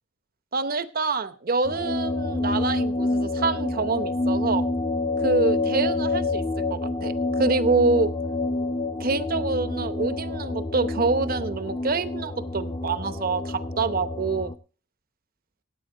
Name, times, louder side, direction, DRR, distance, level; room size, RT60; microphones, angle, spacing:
voice 1, 0.5-4.7 5.2-8.1 9.0-14.5, right 3 dB, 50° right, 12 dB, 0.8 m, -26 dB
sound 1, 1.6-14.5, left 2 dB, 25° left, 0.6 m, -27 dB
16.5 x 8.6 x 3.8 m, 0.37 s
head